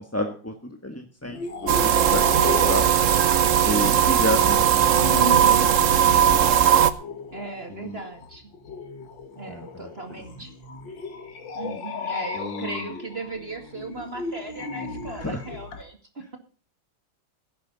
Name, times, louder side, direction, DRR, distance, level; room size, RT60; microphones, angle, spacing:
voice 1, 0.0-2.9 3.6-5.7 6.1-6.4 7.7-8.0 9.5-10.2 11.6-11.8 12.3-13.0 15.1-15.4 16.2-16.3, left 1 dB, 10° left, 4 dB, 1.2 m, -32 dB
sound 1, 1.2-15.8, left 5 dB, 70° left, 2.4 m, -36 dB
sound 2, 1.7-6.9, right 9 dB, 50° right, 1.0 m, -18 dB
voice 2, 5.2-5.7 7.3-8.5 9.4-10.5 11.0-11.1 11.5-16.4, right 2 dB, 30° right, 5 dB, 2.2 m, -36 dB
17.5 x 10.5 x 4.0 m, 0.39 s
omnidirectional pair, 2.1 m